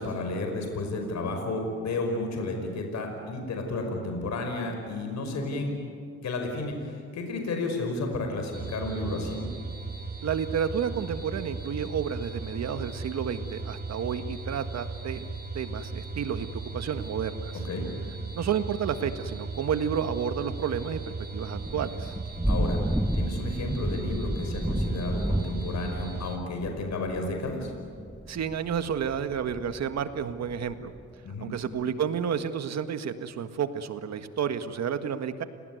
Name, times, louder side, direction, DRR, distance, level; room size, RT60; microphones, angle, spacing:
voice 1, 0.0-5.7 6.2-9.4 17.6-17.8 22.5-22.8 23.1-27.7 31.3-31.5, left 2 dB, 65° left, 4 dB, 5.3 m, -32 dB
sound 1, 8.5-26.4, right 3 dB, 30° right, 3.4 m, -37 dB
voice 2, 10.2-15.3 15.6-17.6 18.4-22.1 28.3-30.9 31.4-35.4, right 7 dB, 60° right, 9 dB, 1.7 m, -31 dB
Thunder / Rain, 21.5-31.0, right 1 dB, 5° right, 0.9 m, -32 dB
29.5 x 19.5 x 9.5 m, 2.4 s
cardioid pair, 90°, 30 cm